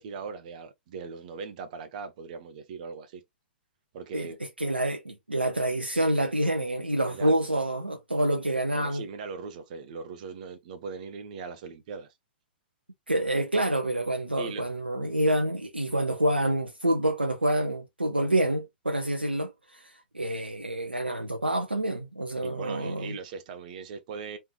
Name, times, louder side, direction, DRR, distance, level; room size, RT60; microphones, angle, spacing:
voice 1, 0.0-3.2 3.9-4.4 7.1-7.3 8.7-12.1 14.4-14.6 22.4-24.4, right 5 dB, 45° right, 0.8 m, -39 dB
voice 2, 4.6-9.0 13.1-23.2, right 1 dB, 85° right, 0.5 m, -27 dB
3.4 x 3.2 x 3.1 m
figure-of-eight pair, 105°, 5 cm